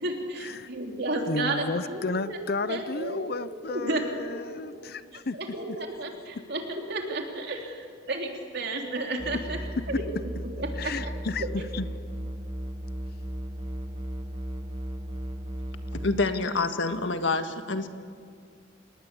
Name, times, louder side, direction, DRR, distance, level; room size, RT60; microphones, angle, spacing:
voice 1, 0.0-5.0 5.3-9.6 9.9-10.1 10.6-10.9, right 2 dB, 55° right, 2 dB, 3.6 m, -33 dB
voice 2, 1.3-5.4 9.9-10.0 10.8-11.9, left 3 dB, 50° left, 15 dB, 0.7 m, -32 dB
sound 1, 9.2-16.3, equal, 30° right, 1.1 m, -35 dB
voice 3, 16.0-17.9, left 3 dB, 70° left, 8 dB, 1.7 m, -27 dB
28.5 x 19.5 x 8.5 m, 2.1 s
head